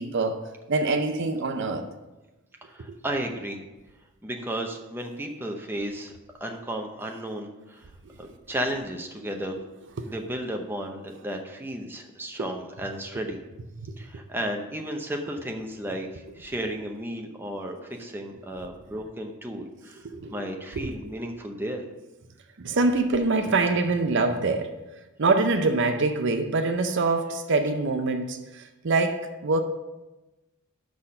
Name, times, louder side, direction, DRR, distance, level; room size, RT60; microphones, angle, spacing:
voice 1, 0.0-1.9 8.2-8.3 10.0-10.1 12.4-12.5 13.7-13.9 20.0-20.5 20.8-21.1 22.6-24.8 25.2-29.6, right 3 dB, 55° right, 0.5 m, -25 dB
voice 2, 2.6-3.6 4.2-6.1 6.4-7.9 8.2-9.6 10.1-13.4 14.0-20.0 20.3-21.8, right 1 dB, 10° right, 0.7 m, -33 dB
6.3 x 5.7 x 6.4 m
head